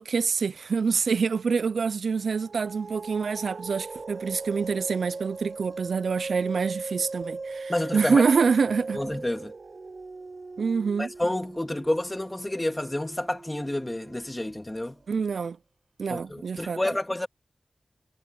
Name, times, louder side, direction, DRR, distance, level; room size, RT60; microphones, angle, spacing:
voice 1, 0.0-9.0 10.6-11.1 15.1-15.6 16.0-16.8, right 5 dB, 90° right, 0.4 m, -26 dB
sound 1, 2.2-15.1, right 3 dB, 60° right, 1.4 m, -39 dB
voice 2, 7.7-8.2 8.9-9.5 11.0-15.0 16.1-17.3, left 1 dB, 20° left, 2.8 m, -29 dB
wide cardioid pair, 65°, 0 cm